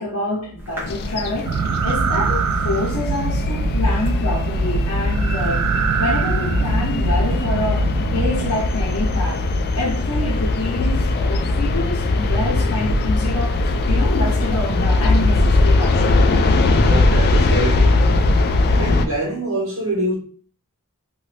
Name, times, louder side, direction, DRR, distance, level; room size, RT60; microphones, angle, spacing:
voice 1, 0.0-1.6 1.8-5.6 6.0-9.4 9.7-16.3, left 2 dB, 75° left, 0.9 m, -26 dB
sound 1, 0.6-7.4, equal, 10° right, 1.0 m, -37 dB
sound 2, 0.8-19.1, left 2 dB, 45° left, 0.3 m, -19 dB
sound 3, 1.4-8.6, right 6 dB, 80° right, 0.3 m, -24 dB
voice 2, 16.9-18.1 18.8-20.2, right 2 dB, 65° right, 1.4 m, -25 dB
2.7 x 2.5 x 3.2 m
head